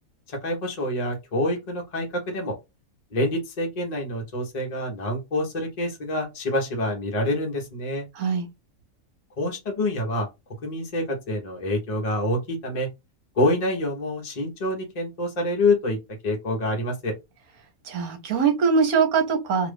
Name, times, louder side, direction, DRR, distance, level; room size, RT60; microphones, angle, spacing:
voice 1, 0.3-2.5 3.1-8.1 9.4-10.3 10.6-12.9 13.3-16.0 16.2-17.1, left 1 dB, 30° left, 0.9 m, -26 dB
voice 2, 8.2-8.5 17.9-19.7, right 5 dB, 65° right, 1.3 m, -22 dB
3.0 x 2.5 x 3.4 m
omnidirectional pair, 1.7 m